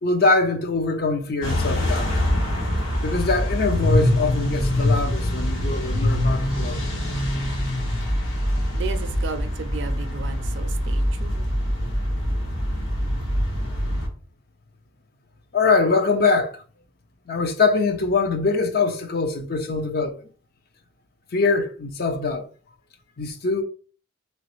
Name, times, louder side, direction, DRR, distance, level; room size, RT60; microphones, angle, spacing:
voice 1, 0.0-2.1 3.0-6.8 15.5-16.6 17.3-20.2 21.3-22.5 23.2-23.6, left 4 dB, 50° left, 0.5 m, -23 dB
sound 1, 1.4-14.1, left 1 dB, 65° left, 1.2 m, -24 dB
voice 2, 8.7-11.8, right 5 dB, 60° right, 0.4 m, -34 dB
3.1 x 3.0 x 3.0 m
head